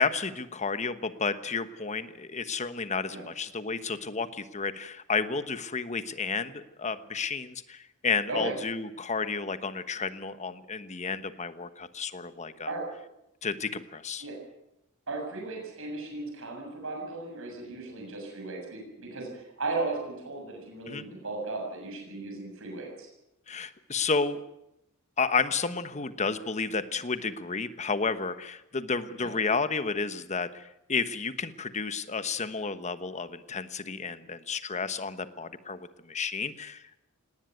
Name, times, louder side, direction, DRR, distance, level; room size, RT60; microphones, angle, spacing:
voice 1, 0.0-12.7 13.4-14.2 20.9-21.0 23.5-24.4 25.2-37.0, left 4 dB, 35° left, 12 dB, 1.2 m, -31 dB
voice 2, 15.1-23.1 29.1-29.3, right 3 dB, 65° right, 1 dB, 7.2 m, -36 dB
18.5 x 18.5 x 9.5 m, 0.86 s
head